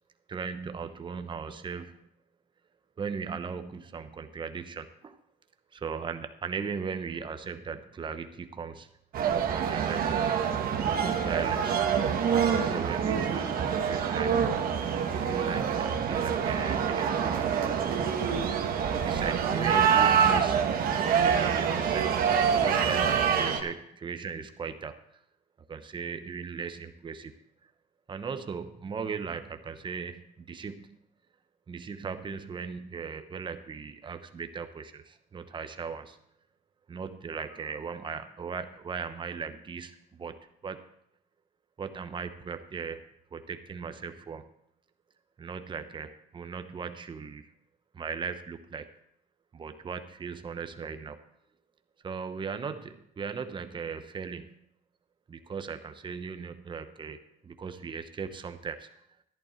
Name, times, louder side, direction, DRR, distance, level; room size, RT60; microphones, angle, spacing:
voice 1, 0.3-2.1 3.0-5.2 5.7-8.9 9.3-11.8 12.3-14.5 15.2-17.8 18.9-20.8 21.0-22.2 22.5-25.0 25.6-27.4 28.1-31.0 31.7-36.2 36.9-40.4 40.6-40.8 41.8-43.0 43.3-44.4 45.4-47.5 47.9-48.9 49.5-51.2 52.0-54.6 55.3-58.9, right 5 dB, 30° right, 9 dB, 0.9 m, -38 dB
sound 1, 9.1-23.6, right 7 dB, 60° right, 1.4 m, -26 dB
11.5 x 10.5 x 4.4 m, 0.74 s
cardioid pair, 110°, 17 cm